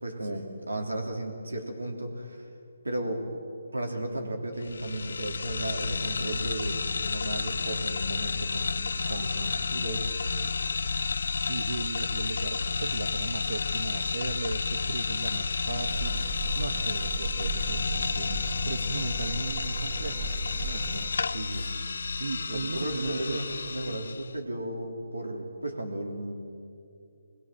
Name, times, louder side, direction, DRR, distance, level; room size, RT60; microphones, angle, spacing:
voice 1, 0.0-2.5 2.8-3.3 3.7-10.1 20.6-21.7 22.5-26.3, right 1 dB, 85° right, 3 dB, 3.7 m, -35 dB
sound 1, 4.6-24.3, left 4 dB, 65° left, 0.6 m, -31 dB
voice 2, 9.0-9.5 11.5-20.3 20.6-20.8 21.5-21.8 22.2-23.4 23.8-24.0, right 3 dB, 65° right, 5 dB, 1.3 m, -37 dB
sound 2, 15.8-21.1, right 3 dB, 35° right, 2.8 m, -36 dB
23.0 x 21.0 x 7.7 m, 2.4 s
figure-of-eight pair, 145°, 0 cm